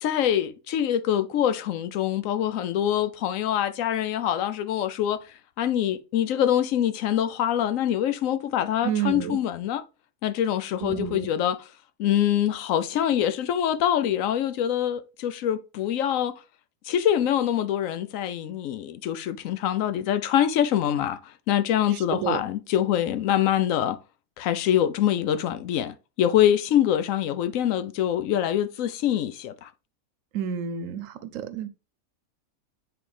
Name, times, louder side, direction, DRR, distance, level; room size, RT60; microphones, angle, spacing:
voice 1, 0.0-5.2 5.6-9.8 10.2-11.7 12.0-16.3 16.9-24.0 24.4-29.7, left 10 dB, 70° left, 1.0 m, -24 dB
voice 2, 8.8-9.4 10.8-11.3 22.1-22.4 30.3-31.7, right 8 dB, 70° right, 1.0 m, -29 dB
7.7 x 3.9 x 3.3 m
omnidirectional pair, 1.5 m